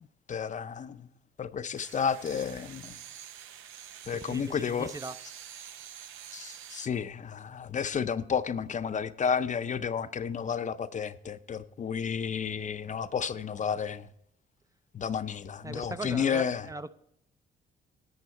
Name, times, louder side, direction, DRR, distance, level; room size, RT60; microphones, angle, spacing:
voice 1, 0.3-1.1 1.4-3.0 4.1-4.9 6.3-14.1 14.9-16.7, left 7 dB, 40° left, 0.5 m, -31 dB
sound 1, 1.8-6.9, right 10 dB, 85° right, 0.7 m, -47 dB
voice 2, 4.1-5.2 15.6-16.9, right 3 dB, 15° right, 0.4 m, -39 dB
11.0 x 8.4 x 4.3 m
cardioid pair, 90°, 20 cm